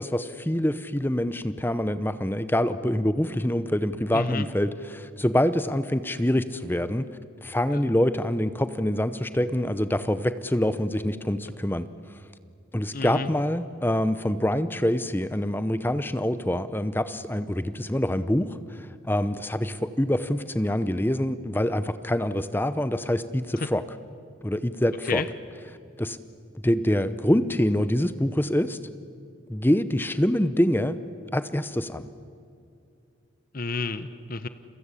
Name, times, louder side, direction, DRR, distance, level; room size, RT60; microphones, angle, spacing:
voice 1, 0.0-7.1 7.4-11.9 12.7-18.6 19.1-23.8 24.4-25.2 26.0-26.2 26.6-28.8 29.5-31.0 31.3-32.1, left 1 dB, 10° left, 13 dB, 0.8 m, -25 dB
voice 2, 4.1-4.4 7.7-7.8 12.9-13.3 25.1-25.3 33.5-34.5, left 3 dB, 45° left, 12 dB, 0.9 m, -30 dB
30.0 x 23.5 x 8.4 m, 2.5 s
head